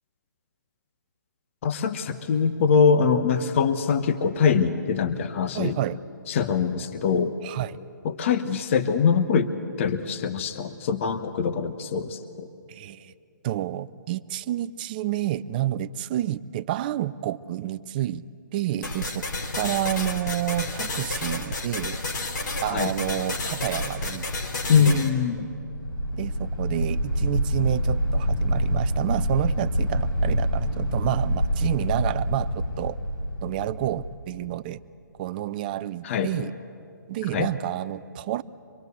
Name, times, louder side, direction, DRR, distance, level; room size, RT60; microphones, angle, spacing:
voice 1, 1.6-5.8 6.3-7.3 8.0-9.5 9.8-12.5 22.6-22.9 24.7-25.5 36.0-36.3 37.3-37.5, left 6 dB, 40° left, 11 dB, 1.0 m, -23 dB
voice 2, 5.5-6.0 7.4-7.8 12.7-13.1 13.4-18.2 18.5-19.2 19.5-22.0 22.6-24.3 24.8-25.1 26.1-33.0 33.4-34.8 35.2-36.5 37.1-38.4, right 13 dB, 25° right, 13 dB, 0.5 m, -29 dB
sound 1, 18.8-25.1, left 2 dB, 60° left, 2.9 m, -31 dB
sound 2, 23.7-34.1, equal, 85° left, 4.7 m, -27 dB
24.5 x 22.0 x 8.1 m, 2.5 s
hypercardioid pair, 150°, 11 cm